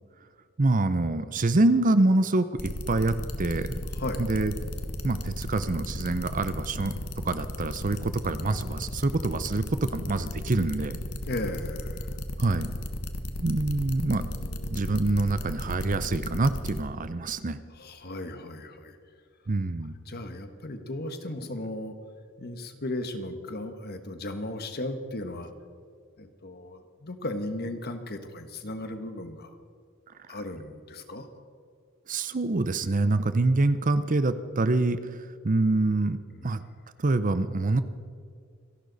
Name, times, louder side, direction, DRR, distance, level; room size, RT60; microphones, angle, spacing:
voice 1, 0.6-3.8 4.2-4.7 5.0-11.0 12.4-12.7 13.4-14.3 14.7-17.6 19.5-19.9 30.3-30.4 32.1-36.6 37.0-37.8, right 2 dB, 35° right, 12 dB, 0.6 m, -26 dB
sound 1, 2.6-16.8, left 1 dB, 80° left, 1.4 m, -35 dB
voice 2, 3.9-4.2 11.3-12.1 14.1-14.8 17.7-19.0 20.1-21.9 22.4-25.5 26.2-29.6 30.3-31.3 36.3-36.5, left 1 dB, 45° left, 8 dB, 1.4 m, -36 dB
27.5 x 11.5 x 4.1 m, 2.2 s
head